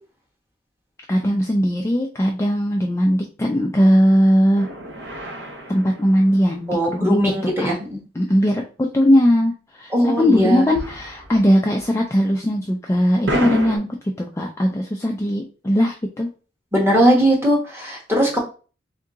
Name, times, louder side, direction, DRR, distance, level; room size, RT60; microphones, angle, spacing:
voice 1, 1.1-4.7 5.7-7.3 7.6-7.7 8.2-13.9 14.2-16.3, equal, 15° left, 1 dB, 0.4 m, -19 dB
sound 1, 4.5-7.0 10.7-11.5 11.8-11.9 13.2-13.8, equal, 65° right, 0.9 m, -30 dB
voice 2, 6.7-8.0 9.9-10.7 13.4-13.5 16.7-18.4, equal, 15° right, -3 dB, 1.2 m, -19 dB
3.7 x 2.8 x 3.6 m, 0.35 s
head